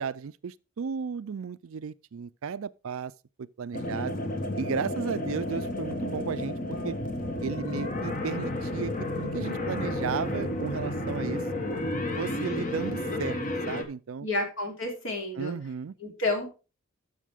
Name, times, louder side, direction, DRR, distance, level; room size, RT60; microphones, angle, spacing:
voice 1, 0.0-3.1 3.4-4.2 4.6-6.6 6.8-7.0 7.4-11.4 12.2-13.4 13.7-14.3 15.4-15.9, right 6 dB, 70° right, 0.4 m, -34 dB
sound 1, 3.7-13.8, left 1 dB, 35° left, 1.3 m, -32 dB
voice 2, 14.2-15.5 16.0-16.5, left 2 dB, 60° left, 3.2 m, -30 dB
12.5 x 6.5 x 3.5 m
head